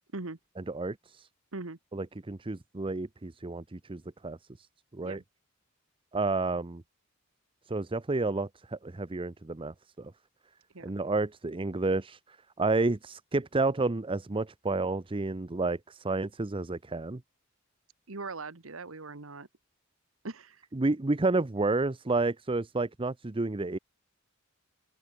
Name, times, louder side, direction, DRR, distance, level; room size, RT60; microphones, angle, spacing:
voice 1, 0.6-1.3 1.9-4.7 4.9-5.2 6.1-6.8 7.7-10.1 10.8-12.2 12.6-17.2 20.7-23.8, right 3 dB, 25° right, 0.7 m, -30 dB
voice 2, 18.1-19.5 20.2-20.6, right 3 dB, 80° right, 1.5 m, -40 dB
open air
head